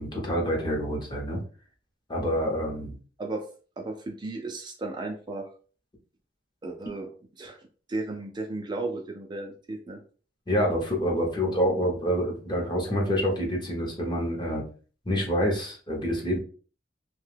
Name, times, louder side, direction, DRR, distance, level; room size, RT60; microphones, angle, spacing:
voice 1, 0.0-1.4 2.1-2.9 10.5-14.6 15.1-16.4, equal, 25° left, -1 dB, 0.8 m, -27 dB
voice 2, 3.8-5.5 6.6-7.1 7.4-7.6 7.9-10.0, right 2 dB, 25° right, 2 dB, 0.4 m, -34 dB
2.8 x 2.2 x 3.2 m, 0.39 s
head